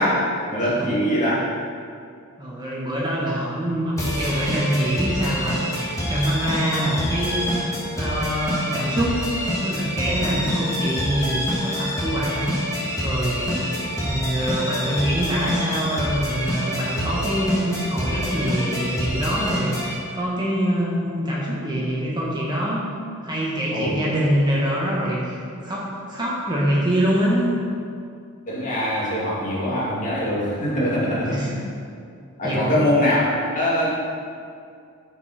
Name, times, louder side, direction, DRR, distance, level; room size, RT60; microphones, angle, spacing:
voice 1, 0.0-1.5 10.2-10.4 13.5-13.7 23.7-24.0 28.5-31.6 32.4-34.1, equal, 35° left, -7 dB, 2.6 m, -23 dB
voice 2, 2.4-5.6 6.1-7.6 8.0-9.2 9.6-12.6 13.0-13.6 14.0-22.9 23.2-27.6 31.2-31.5 32.4-32.9, equal, 20° right, -6 dB, 1.5 m, -24 dB
sound 1, 4.0-19.9, equal, 15° left, 2.2 m, -27 dB
14.0 x 5.4 x 4.4 m, 2.3 s
head